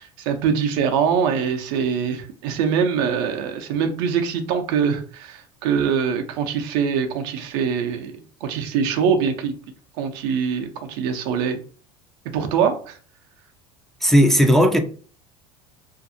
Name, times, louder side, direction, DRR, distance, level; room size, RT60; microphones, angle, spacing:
voice 1, 0.0-9.5 10.0-11.6 12.2-13.0, right 7 dB, 75° right, 0.6 m, -23 dB
voice 2, 14.0-14.8, equal, 5° left, 0.4 m, -15 dB
2.5 x 2.4 x 2.6 m
supercardioid pair, 100°, 13 cm